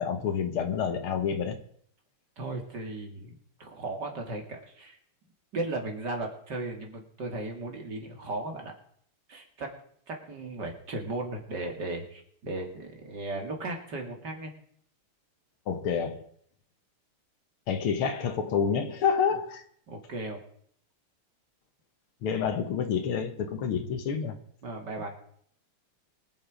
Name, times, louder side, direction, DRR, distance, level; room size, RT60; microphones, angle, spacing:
voice 1, 0.0-1.6 15.7-16.3 17.7-19.6 22.2-24.4, left 7 dB, 75° left, 2.1 m, -28 dB
voice 2, 2.4-5.0 5.5-8.7 9.3-9.7 10.1-14.5 19.9-20.4 24.6-25.2, right 2 dB, 50° right, 2.9 m, -36 dB
23.5 x 7.8 x 5.1 m
omnidirectional pair, 2.4 m